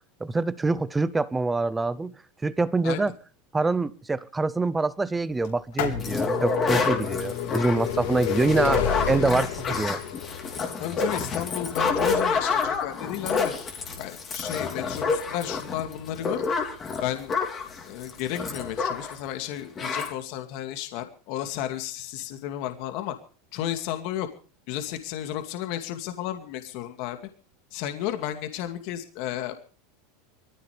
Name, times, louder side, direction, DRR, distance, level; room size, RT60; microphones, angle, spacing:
voice 1, 0.2-2.1 2.4-3.1 3.5-10.0, right 3 dB, 10° right, 0.7 m, -25 dB
sound 1, 5.4-17.1 17.9-18.0 19.0-19.1 19.3-19.4, left 8 dB, 65° left, 4.1 m, -32 dB
sound 2, 6.0-19.2 19.4-19.5 19.8-20.1, left 4 dB, 20° left, 3.5 m, -28 dB
voice 2, 10.8-13.5 14.0-16.4 17.0-17.4 17.9-23.2 23.5-24.3 24.7-27.2 27.7-29.6, left 12 dB, 45° left, 2.4 m, -33 dB
23.5 x 15.0 x 3.4 m
supercardioid pair, 170°, 0 cm